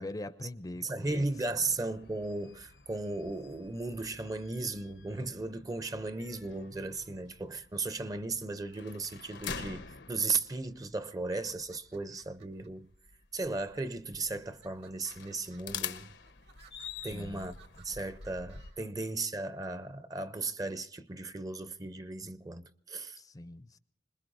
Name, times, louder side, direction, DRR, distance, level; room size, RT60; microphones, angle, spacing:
voice 1, 0.0-1.3 17.0-17.5 18.8-18.9 23.2-23.8, left 1 dB, 20° left, 0.5 m, -42 dB
voice 2, 0.8-12.9 13.3-16.1 17.0-23.2, right 3 dB, 20° right, 0.6 m, -36 dB
sound 1, 1.2-18.7, left 7 dB, 85° left, 1.0 m, -47 dB
sound 2, 11.3-12.7 13.4-13.9 14.4-18.8, right 5 dB, 70° right, 2.4 m, -62 dB
26.5 x 20.5 x 2.6 m
head